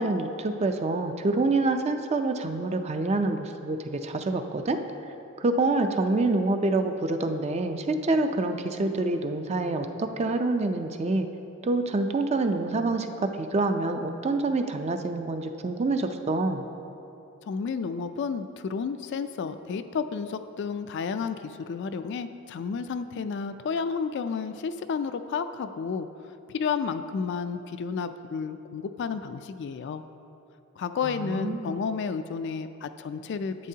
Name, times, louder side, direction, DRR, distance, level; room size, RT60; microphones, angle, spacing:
voice 1, 0.0-4.8 5.4-11.3 11.6-16.6 31.0-31.7, right 2 dB, 30° right, 7 dB, 0.4 m, -26 dB
voice 2, 17.5-26.1 26.5-30.0 30.8-33.7, left 5 dB, 55° left, 10 dB, 0.3 m, -31 dB
11.0 x 8.4 x 2.8 m, 2.9 s
head